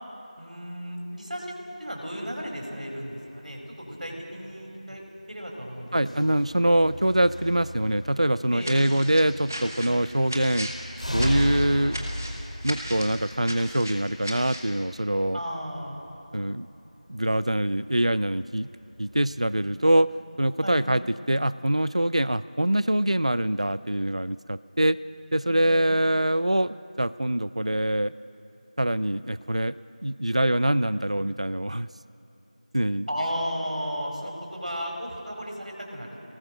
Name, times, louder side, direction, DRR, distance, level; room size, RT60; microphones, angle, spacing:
voice 1, 0.4-1.5 1.8-5.0 5.3-6.4 8.5-8.8 15.3-16.0 20.6-20.8 25.4-25.9 33.1-36.2, equal, 70° right, 0 dB, 4.9 m, -34 dB
sound 1, 2.2-19.6, equal, 60° left, 3.2 m, -38 dB
voice 2, 5.9-10.7 11.1-12.0 12.6-15.4 16.3-16.7 17.1-18.7 19.0-20.1 20.4-21.0 21.3-25.0 25.3-28.1 28.8-31.9 32.7-33.1, right 1 dB, 50° right, 16 dB, 0.4 m, -24 dB
sound 2, 8.6-14.7, equal, 25° right, 1.3 m, -37 dB
23.0 x 19.0 x 6.4 m, 2.9 s
figure-of-eight pair, 180°, 4 cm